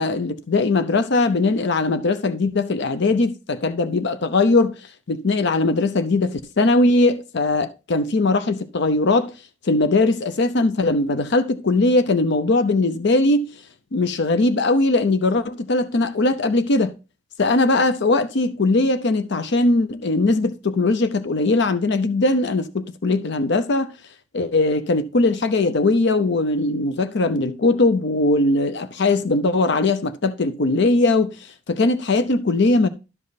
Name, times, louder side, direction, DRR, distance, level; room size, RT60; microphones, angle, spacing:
voice 1, 0.0-4.8 5.1-9.3 9.6-13.5 13.9-16.9 17.4-23.9 24.3-31.3 31.7-32.9, left 2 dB, 60° left, 0.7 m, -20 dB
12.0 x 5.3 x 4.0 m
head